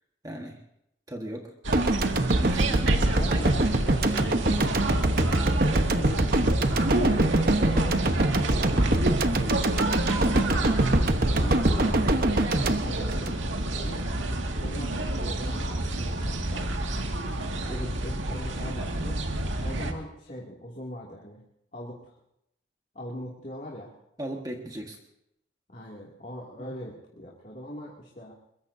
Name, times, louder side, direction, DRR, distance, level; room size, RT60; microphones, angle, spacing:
voice 1, 0.2-0.6 1.1-1.5 2.2-2.9 8.7-9.0 10.6-10.8 24.2-25.0 26.6-26.7, right 1 dB, 20° right, 2 dB, 1.5 m, -37 dB
sound 1, 1.6-19.9, right 2 dB, 80° right, 2.1 m, -30 dB
sound 2, 1.7-13.9, right 1 dB, 50° right, 1.1 m, -24 dB
voice 2, 2.9-4.4 5.6-8.9 9.2-10.0 11.2-13.3 13.6-14.1 14.5-16.7 17.7-19.2 19.6-21.4 21.7-22.2 22.9-23.9 25.7-28.3, equal, 40° left, -3 dB, 2.5 m, -41 dB
23.0 x 22.5 x 2.8 m, 0.79 s
head